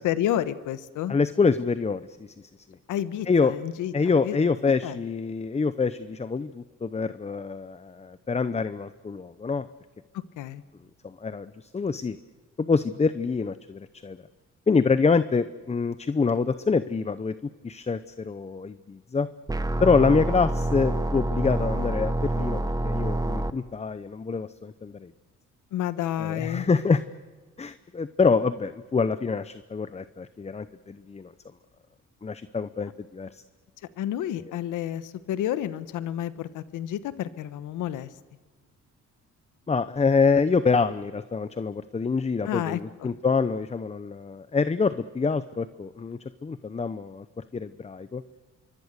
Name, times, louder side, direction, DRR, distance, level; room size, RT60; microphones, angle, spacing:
voice 1, 0.0-1.2 2.9-3.9 4.2-4.4 4.8-5.0 10.4-10.6 25.7-26.7 34.0-38.1 42.4-43.2, left 11 dB, 85° left, 13 dB, 1.3 m, -30 dB
voice 2, 1.1-2.0 3.3-3.5 3.9-9.7 11.0-12.2 12.6-14.2 14.7-19.3 19.8-25.1 26.2-27.0 27.6-31.3 32.2-33.4 39.7-47.2 47.5-48.2, left 4 dB, 20° left, 13 dB, 0.8 m, -26 dB
sound 1, 19.5-23.5, right 1 dB, 10° right, 1.0 m, -27 dB
26.0 x 24.0 x 6.7 m, 1.4 s
cardioid pair, 90°, 30 cm